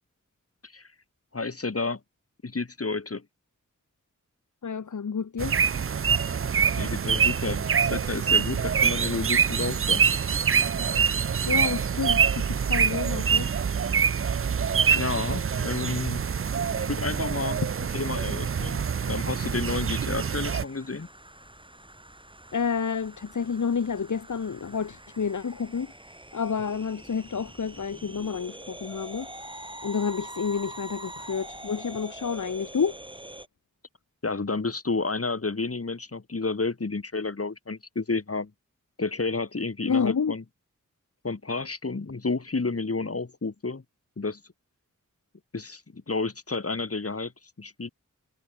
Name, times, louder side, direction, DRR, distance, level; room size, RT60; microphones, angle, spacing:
voice 1, 1.3-2.0 2.4-3.2 6.7-10.0 15.0-16.2 16.8-17.6 17.9-21.1 34.2-38.5 39.0-40.4 41.2-43.8 44.2-44.4 45.5-47.3 47.6-47.9, left 3 dB, 45° left, 3.6 m, -31 dB
voice 2, 4.6-5.6 11.4-13.5 22.5-25.9 26.3-33.0 39.8-40.3, left 6 dB, 70° left, 1.4 m, -29 dB
sound 1, 5.4-20.6, right 7 dB, 45° right, 0.5 m, -25 dB
sound 2, 19.4-33.5, right 1 dB, 15° right, 4.8 m, -45 dB
wide cardioid pair, 70°, 31 cm